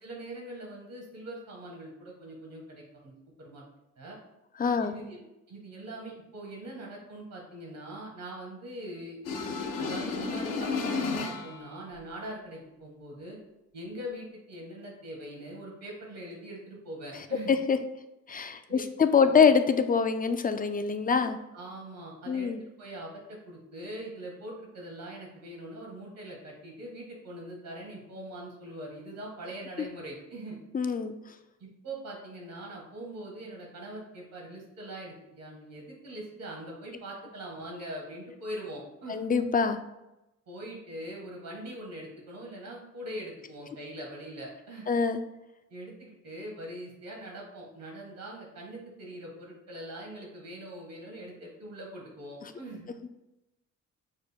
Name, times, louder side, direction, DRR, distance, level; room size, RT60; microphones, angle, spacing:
voice 1, 0.0-3.1 3.4-3.6 4.0-4.2 4.8-5.2 5.5-9.2 9.8-13.4 13.7-17.5 18.7-18.9 19.2-19.4 21.5-22.5 22.8-30.6 31.6-39.2 40.5-44.9 45.7-52.9, right 1 dB, 75° right, -1 dB, 1.5 m, -42 dB
voice 2, 4.6-4.9 17.5-17.8 18.3-21.4 22.3-22.6 30.7-31.1 39.1-39.8 44.9-45.2 53.0-53.1, left 6 dB, 25° left, 8 dB, 0.3 m, -24 dB
sound 1, 9.2-11.7, left 4 dB, 75° left, 0.8 m, -32 dB
6.3 x 2.1 x 3.4 m, 0.92 s
cardioid pair, 75°, 33 cm